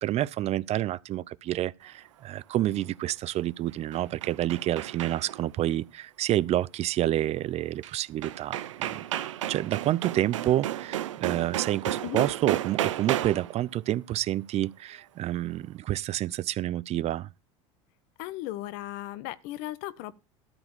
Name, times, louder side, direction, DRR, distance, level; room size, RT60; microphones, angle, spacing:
voice 1, 0.0-9.0 9.5-17.3, right 13 dB, 45° right, 0.5 m, -29 dB
sound 1, 3.7-5.5 7.8-7.9 8.2-13.6, right 12 dB, 85° right, 0.8 m, -33 dB
voice 2, 18.2-20.1, left 15 dB, 65° left, 1.1 m, -36 dB
13.0 x 4.8 x 7.2 m
hypercardioid pair, 90°, 16 cm